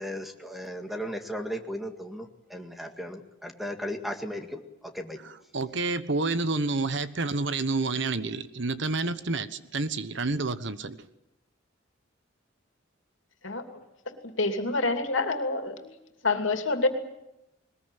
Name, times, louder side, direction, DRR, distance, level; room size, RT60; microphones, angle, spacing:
voice 1, 0.0-5.2, equal, ahead, 2.0 m, -36 dB
voice 2, 5.5-11.0, right 3 dB, 65° right, 1.2 m, -29 dB
voice 3, 14.4-15.9 16.2-16.9, left 3 dB, 75° left, 2.8 m, -27 dB
21.0 x 20.0 x 9.2 m
head